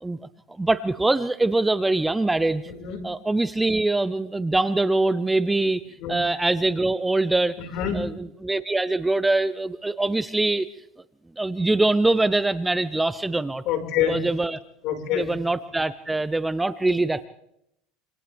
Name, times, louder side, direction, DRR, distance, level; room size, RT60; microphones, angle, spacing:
voice 1, 0.6-2.7 3.0-5.8 6.1-7.5 7.9-10.7 11.4-13.6 14.1-14.6 15.1-17.3, right 2 dB, 10° right, 13 dB, 0.7 m, -23 dB
voice 2, 2.7-3.0 6.0-6.2 7.7-8.0 13.7-14.2 14.8-15.3, left 10 dB, 60° left, 3 dB, 5.4 m, -26 dB
27.5 x 27.0 x 3.6 m, 0.79 s
supercardioid pair, 120°, 0 cm